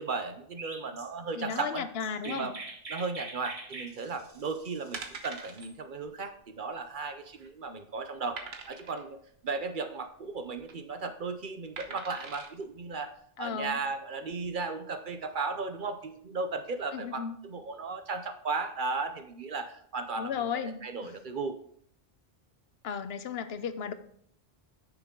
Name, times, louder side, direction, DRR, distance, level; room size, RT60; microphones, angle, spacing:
voice 1, 0.0-1.9 2.2-2.6 2.9-9.2 9.4-13.1 13.4-20.3 20.8-21.6, right 4 dB, 55° right, 8 dB, 0.8 m, -35 dB
Chirp tweet, 0.6-5.7, right 2 dB, 35° right, 1.1 m, -44 dB
voice 2, 1.4-2.5 13.4-13.8 16.9-17.4 20.2-21.1 22.8-23.9, left 7 dB, 75° left, 11 dB, 0.9 m, -35 dB
sound 1, 4.9-5.7 6.0-6.2 6.4-6.5 7.1-7.6 8.4-9.0 10.4-10.7 11.8-12.5 13.1-13.2, right 4 dB, 85° right, 1.3 m, -43 dB
9.8 x 6.1 x 3.7 m, 0.65 s
omnidirectional pair, 1.0 m